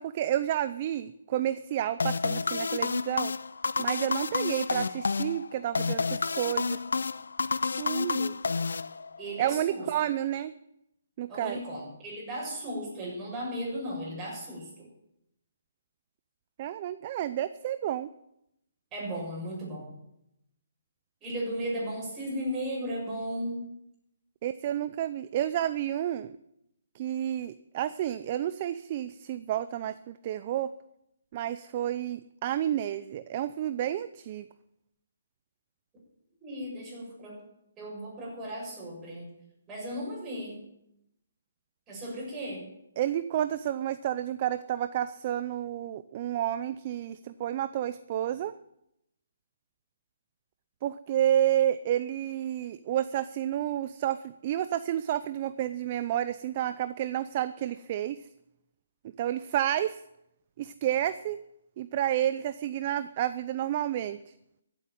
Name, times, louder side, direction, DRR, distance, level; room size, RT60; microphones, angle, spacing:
voice 1, 0.0-3.3 3.8-6.8 7.8-8.4 9.4-10.5 11.2-11.6 16.6-18.1 24.4-26.4 26.9-30.7 31.3-34.4 43.0-48.5 50.8-58.2 59.2-60.0 60.6-61.4 61.8-64.3, right 11 dB, 30° right, 13 dB, 0.5 m, -30 dB
sound 1, 2.0-9.4, left 4 dB, 80° left, 0.6 m, -30 dB
voice 2, 9.2-9.9 11.3-14.7 18.9-19.9 21.2-23.7 36.4-37.4 37.8-39.3 39.7-40.6 41.9-42.7, equal, 15° right, -4 dB, 6.9 m, -35 dB
15.0 x 8.5 x 9.1 m, 0.82 s
hypercardioid pair, 160°, 0 cm